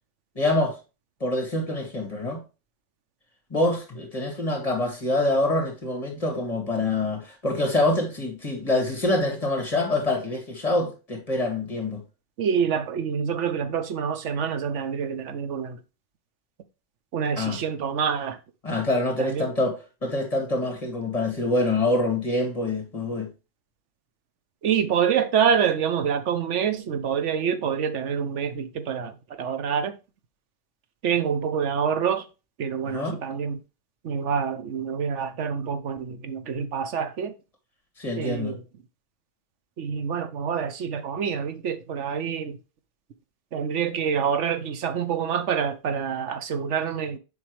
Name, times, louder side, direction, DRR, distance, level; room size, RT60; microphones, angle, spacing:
voice 1, 0.4-0.8 1.2-2.4 3.5-12.0 17.4-17.6 18.6-19.7 20.0-23.3 32.9-33.2 38.0-38.5, left 2 dB, 30° left, 2.1 m, -25 dB
voice 2, 12.4-15.8 17.1-18.4 19.2-19.5 24.6-29.9 31.0-32.3 32.6-33.6 34.0-37.3 38.2-38.6 39.8-42.6 43.5-47.2, right 7 dB, 75° right, 1.1 m, -26 dB
7.3 x 5.2 x 3.1 m
omnidirectional pair, 1.2 m